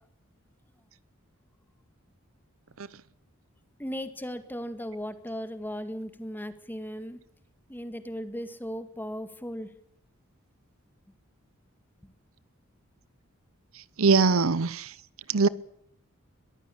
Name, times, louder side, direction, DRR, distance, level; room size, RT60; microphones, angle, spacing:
voice 1, 3.8-7.2 7.7-9.7, equal, 10° left, 2.0 m, -37 dB
voice 2, 14.0-14.9 15.3-15.5, right 4 dB, 70° right, 0.8 m, -21 dB
22.0 x 14.5 x 8.6 m
head